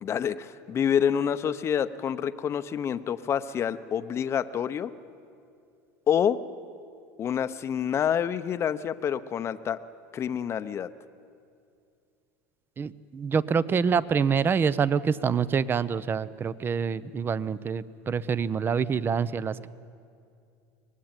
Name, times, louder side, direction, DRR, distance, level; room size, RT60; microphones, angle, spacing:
voice 1, 0.0-4.9 6.1-6.4 7.2-9.8 10.1-10.9, left 8 dB, 35° left, 11 dB, 0.8 m, -27 dB
voice 2, 12.8-19.7, right 6 dB, 25° right, 17 dB, 0.8 m, -26 dB
24.0 x 19.5 x 9.0 m, 2.4 s
supercardioid pair, 115°, 8 cm